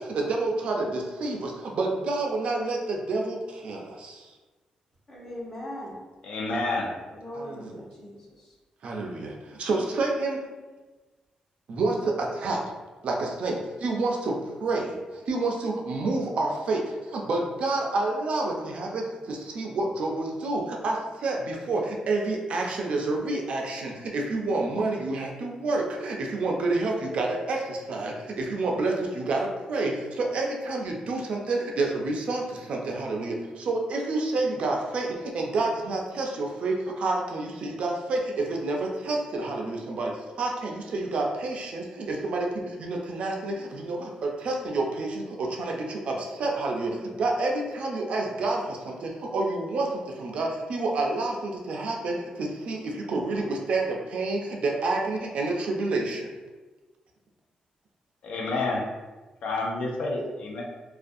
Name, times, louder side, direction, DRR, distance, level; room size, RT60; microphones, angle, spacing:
voice 1, 0.0-1.4 1.8-2.8 3.1-3.4 3.6-3.8 8.8-9.2 9.6-10.4 11.7-11.9 12.4-12.6 13.0-13.5 13.8-14.3 14.6-14.8 15.3-16.8 17.3-19.0 19.3-21.0 21.2-21.8 22.1-28.1 28.4-29.9 30.3-32.4 32.7-33.3 33.7-35.1 35.3-36.7 37.0-38.2 38.6-40.1 40.4-43.5 43.9-44.1 44.4-45.1 45.6-45.7 46.1-46.2 46.4-46.9 47.2-48.6 49.3-49.9 50.2-51.3 51.7-52.1 52.7-52.8 53.1-53.8 54.1-56.2, right 3 dB, 60° right, 0.4 m, -28 dB
voice 2, 5.1-5.9 7.1-8.5, left 1 dB, 20° left, 0.7 m, -40 dB
voice 3, 6.2-6.9 58.2-58.8 59.4-60.6, left 2 dB, 75° left, 0.5 m, -29 dB
2.4 x 2.3 x 2.5 m
wide cardioid pair, 155°, 2 cm